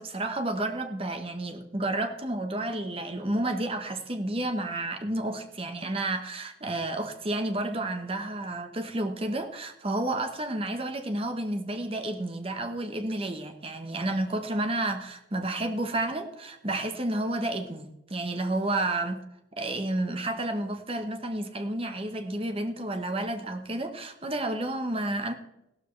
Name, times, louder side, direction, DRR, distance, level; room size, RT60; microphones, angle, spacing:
voice 1, 0.0-19.2 19.6-25.3, right 1 dB, 30° right, 6 dB, 1.1 m, -31 dB
16.0 x 12.5 x 3.3 m, 0.87 s
head